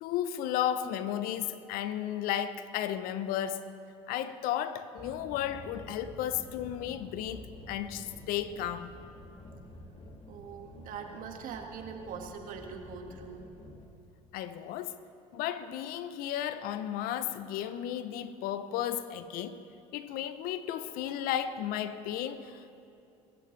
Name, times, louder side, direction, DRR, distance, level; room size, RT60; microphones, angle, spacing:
voice 1, 0.0-3.6 4.1-8.9 14.3-15.0 15.3-19.6 19.9-22.6, left 10 dB, 65° left, 0.8 m, -34 dB
sound 1, 5.0-13.8, left 1 dB, 35° left, 2.3 m, -49 dB
voice 2, 10.3-13.5, right 6 dB, 55° right, 2.0 m, -42 dB
25.5 x 15.0 x 3.3 m
hypercardioid pair, 70°, 16 cm